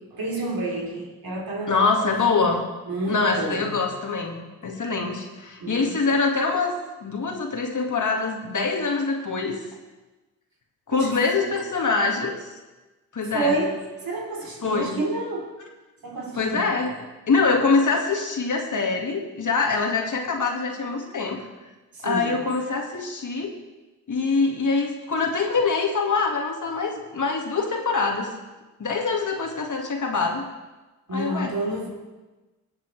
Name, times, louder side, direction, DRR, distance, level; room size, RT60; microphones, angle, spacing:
voice 1, 0.1-1.8 2.9-3.8 5.6-6.0 10.9-11.5 13.3-15.6 16.0-16.7 21.9-22.4 31.1-31.9, right 2 dB, 60° right, 3.5 m, -29 dB
voice 2, 1.7-2.7 3.1-6.7 7.0-9.6 10.9-12.5 13.1-13.6 14.6-15.0 16.3-21.5 22.0-23.5 24.1-28.3 28.8-30.4 31.1-31.5, left 4 dB, 45° left, 2.1 m, -24 dB
20.0 x 7.4 x 3.3 m
supercardioid pair, 45°, 40 cm